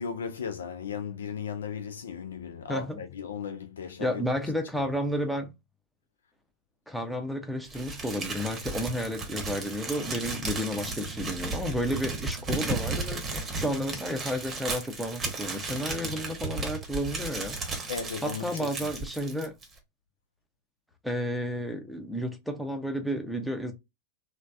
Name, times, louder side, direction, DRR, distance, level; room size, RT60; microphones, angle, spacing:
voice 1, 0.0-4.2 4.8-4.9 17.9-19.0, left 6 dB, 65° left, 0.3 m, -36 dB
voice 2, 2.7-3.0 4.0-5.5 6.9-17.6 18.2-19.5 21.0-23.7, equal, ahead, 0.6 m, -32 dB
Crumpling crinkling, 7.7-19.8, right 3 dB, 20° right, 0.9 m, -35 dB
3.2 x 2.1 x 2.5 m
figure-of-eight pair, 90°, 0 cm